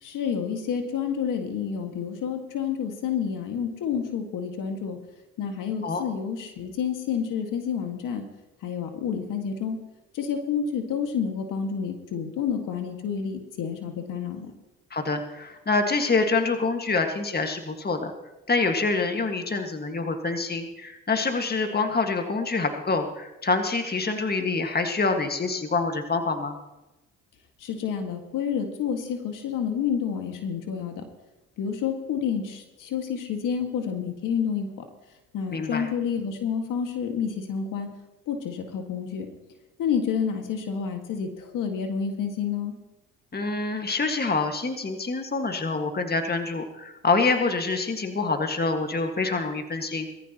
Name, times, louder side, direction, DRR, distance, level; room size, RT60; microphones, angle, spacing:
voice 1, 0.0-5.0 5.4-8.2 8.6-9.8 10.1-14.5 27.6-31.0 31.6-34.7 35.3-37.9 38.3-39.3 39.8-42.7, left 7 dB, 75° left, 5 dB, 1.9 m, -29 dB
voice 2, 14.9-18.1 18.5-26.6 35.5-35.9 43.3-50.2, left 3 dB, 30° left, 5 dB, 1.8 m, -26 dB
21.0 x 14.5 x 3.0 m, 1.0 s
supercardioid pair, 60°, 32 cm